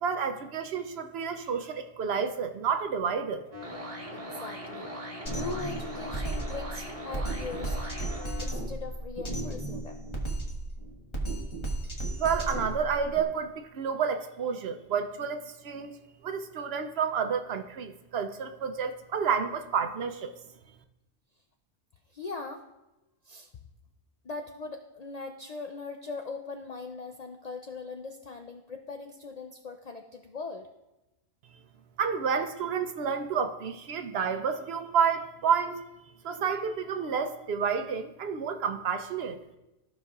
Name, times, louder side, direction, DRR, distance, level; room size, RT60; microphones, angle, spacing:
voice 1, 0.0-3.4 12.2-20.3 32.0-35.8 36.2-39.4, right 6 dB, 65° right, 8 dB, 0.8 m, -30 dB
sound 1, 3.5-8.5, equal, 30° right, 1.0 m, -40 dB
voice 2, 4.1-4.9 5.3-7.8 8.4-10.0 22.1-22.6 23.2-23.5 24.2-30.7, left 4 dB, 60° left, 4 dB, 0.4 m, -40 dB
Drum kit, 5.3-13.2, right 1 dB, 25° left, 1.0 m, -34 dB
14.0 x 5.3 x 2.4 m, 0.96 s
omnidirectional pair, 1.3 m